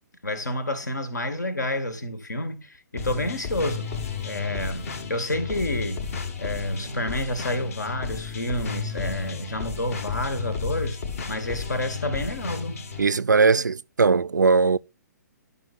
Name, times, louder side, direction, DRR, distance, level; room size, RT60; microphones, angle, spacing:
voice 1, 0.2-3.9 4.2-6.0 6.4-11.0 11.3-12.8, left 1 dB, 75° left, 1.8 m, -29 dB
sound 1, 3.0-13.1, left 6 dB, 50° left, 1.5 m, -33 dB
voice 2, 13.0-14.8, right 4 dB, 80° right, 0.4 m, -19 dB
11.0 x 5.7 x 4.1 m
figure-of-eight pair, 125°, 10 cm